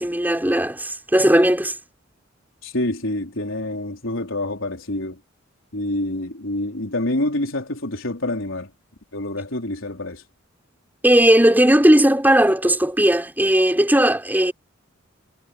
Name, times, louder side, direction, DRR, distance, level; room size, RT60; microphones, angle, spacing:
voice 1, 0.0-1.7 11.0-14.5, right 1 dB, 10° right, 4.4 m, -17 dB
voice 2, 2.6-5.2 5.7-8.7 9.1-10.2, left 1 dB, 75° left, 4.7 m, -27 dB
head